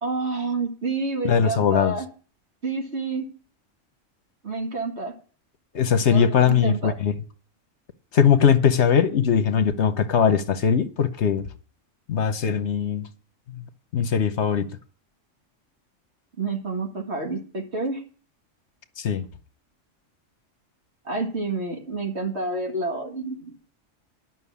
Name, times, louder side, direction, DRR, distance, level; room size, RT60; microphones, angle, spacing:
voice 1, 0.0-2.1 2.6-3.3 4.4-5.1 6.1-6.9 16.4-18.0 21.0-23.6, right 3 dB, 60° right, 2.1 m, -29 dB
voice 2, 1.2-1.9 5.7-7.1 8.1-11.5 12.1-13.1 13.9-14.7 19.0-19.2, left 7 dB, 65° left, 1.2 m, -20 dB
11.0 x 6.1 x 8.5 m
omnidirectional pair, 1.3 m